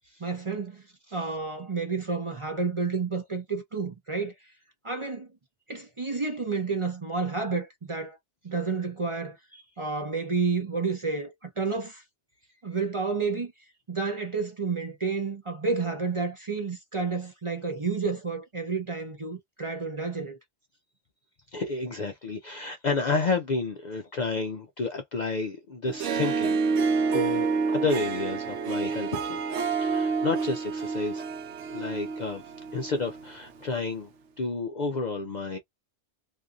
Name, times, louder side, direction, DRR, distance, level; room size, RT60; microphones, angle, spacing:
voice 1, 0.2-0.8 1.1-4.3 4.8-5.3 5.7-8.2 8.4-9.4 9.8-12.0 12.6-13.5 13.9-20.4, right 4 dB, 35° right, 0.6 m, -30 dB
voice 2, 21.5-26.6 27.1-29.4 29.8-31.3 31.7-32.4 32.7-34.1 34.4-35.6, left 3 dB, 55° left, 0.5 m, -30 dB
Harp, 25.9-33.3, right 5 dB, 80° right, 0.9 m, -28 dB
2.6 x 2.5 x 2.4 m
omnidirectional pair, 1.2 m